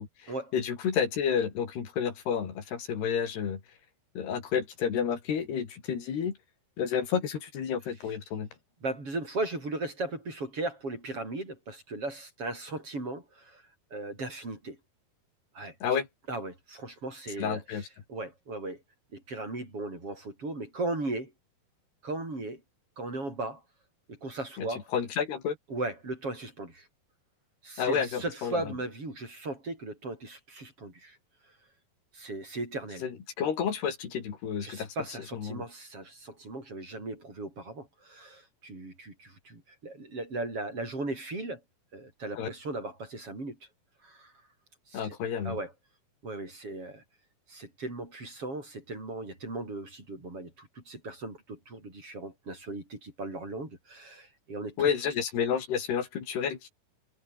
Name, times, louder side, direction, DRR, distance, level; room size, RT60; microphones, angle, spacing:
voice 1, 0.0-3.6 4.2-6.4 6.8-8.5 15.8-16.1 17.4-17.9 24.6-25.6 27.8-28.6 33.0-35.0 35.3-35.6 42.4-42.5 44.9-45.6 54.8-56.7, left 7 dB, 90° left, 5.7 m, -30 dB
voice 2, 8.8-13.6 13.9-14.8 15.5-15.8 16.3-17.6 18.1-18.8 19.1-21.3 22.0-22.6 23.0-23.6 24.1-24.9 25.7-26.9 27.6-31.2 32.1-33.1 34.6-41.6 41.9-43.6 44.0-44.3 44.9-45.0 45.4-45.7 46.2-47.0 47.5-54.9, right 2 dB, 35° right, 8.8 m, -37 dB
omnidirectional pair, 4.5 m